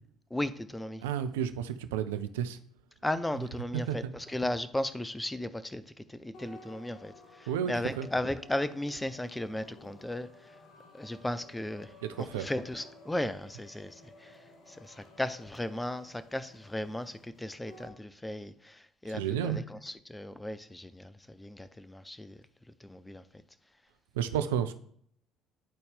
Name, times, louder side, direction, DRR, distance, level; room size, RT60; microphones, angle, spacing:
voice 1, 0.3-1.0 3.0-7.1 7.4-10.3 10.9-11.9 12.2-14.3 14.8-22.4 22.8-23.2, left 1 dB, 10° left, 13 dB, 0.6 m, -36 dB
voice 2, 1.0-2.6 3.7-4.1 7.5-8.1 12.0-12.5 19.1-19.6 24.1-24.7, right 9 dB, 75° right, 10 dB, 0.4 m, -32 dB
sound 1, 6.3-18.0, left 2 dB, 60° left, 1.1 m, -55 dB
10.5 x 4.2 x 3.3 m, 0.63 s
hypercardioid pair, 55°, 0 cm